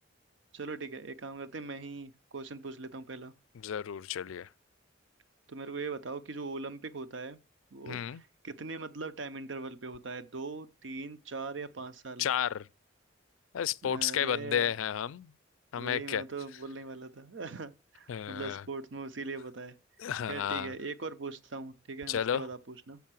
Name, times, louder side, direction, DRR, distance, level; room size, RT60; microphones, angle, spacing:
voice 1, 0.5-3.3 5.5-7.4 7.7-12.3 13.8-14.7 15.7-19.8 20.3-23.0, right 3 dB, 65° right, 0.7 m, -40 dB
voice 2, 3.6-4.5 7.9-8.2 12.2-12.7 13.5-15.3 15.7-16.2 18.1-18.6 20.0-20.7 22.1-22.4, left 9 dB, 85° left, 0.4 m, -32 dB
7.1 x 5.5 x 7.5 m
head